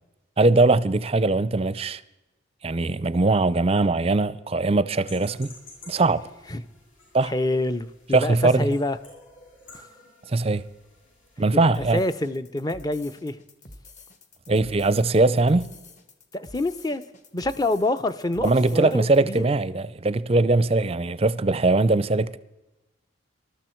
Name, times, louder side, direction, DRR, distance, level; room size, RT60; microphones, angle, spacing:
voice 1, 0.4-2.0 2.6-5.5 5.9-6.2 7.1-7.3 8.1-8.7 10.3-10.6 11.4-12.0 14.5-15.7 18.4-22.4, right 2 dB, 30° right, 0.5 m, -21 dB
sound 1, 5.0-11.5, left 2 dB, 70° left, 7.5 m, -51 dB
voice 2, 7.2-9.0 9.7-9.8 11.5-13.4 16.3-17.0 17.3-19.4, left 2 dB, 20° left, 0.6 m, -27 dB
sound 2, 11.7-19.2, left 2 dB, 35° left, 1.3 m, -48 dB
20.0 x 13.0 x 4.5 m
head